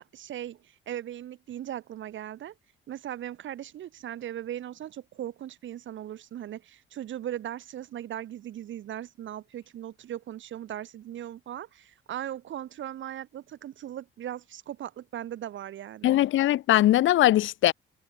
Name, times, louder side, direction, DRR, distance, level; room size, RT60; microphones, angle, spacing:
voice 1, 0.0-2.5 2.9-16.2, right 11 dB, 70° right, 3.8 m, -38 dB
voice 2, 16.0-17.7, left 14 dB, 75° left, 1.1 m, -21 dB
cardioid pair, 90°, 20 cm